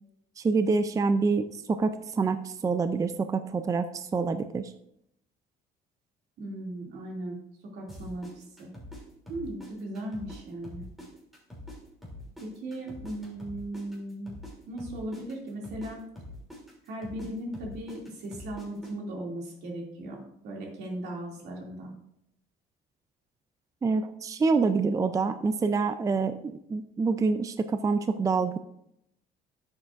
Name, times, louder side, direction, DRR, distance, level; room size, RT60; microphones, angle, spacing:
voice 1, 0.4-4.7 23.8-28.6, right 4 dB, 20° right, 10 dB, 0.4 m, -26 dB
voice 2, 6.4-7.4 7.7-8.7 9.3-10.9 12.4-14.3 14.7-16.0 16.9-21.9, right 1 dB, 75° right, -1 dB, 2.5 m, -37 dB
sound 1, 7.9-10.4 10.6-14.5 14.8-18.9, left 1 dB, ahead, 2.9 m, -44 dB
10.5 x 7.2 x 2.5 m, 0.76 s
cardioid pair, 110°, 17 cm